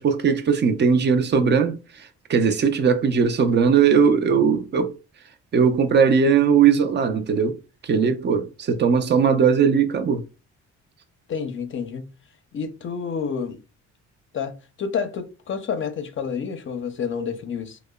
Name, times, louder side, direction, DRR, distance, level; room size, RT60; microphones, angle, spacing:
voice 1, 0.0-4.9 5.5-7.6 7.8-10.2, right 6 dB, 35° right, 0.4 m, -19 dB
voice 2, 11.3-12.1 12.5-13.6 14.3-17.8, left 6 dB, 40° left, 0.5 m, -29 dB
2.8 x 2.0 x 2.2 m
cardioid pair, 90°, 30 cm